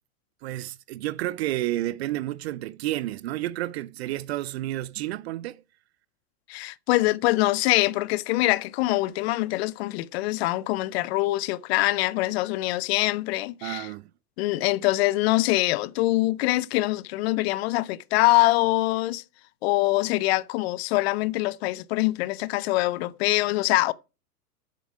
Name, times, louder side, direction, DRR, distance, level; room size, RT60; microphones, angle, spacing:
voice 1, 0.4-5.6 13.6-14.1, right 15 dB, 45° right, 0.4 m, -30 dB
voice 2, 6.5-13.9 14.4-19.2 19.6-23.9, left 19 dB, 40° left, 0.5 m, -24 dB
7.6 x 6.9 x 6.0 m
hypercardioid pair, 110°, 48 cm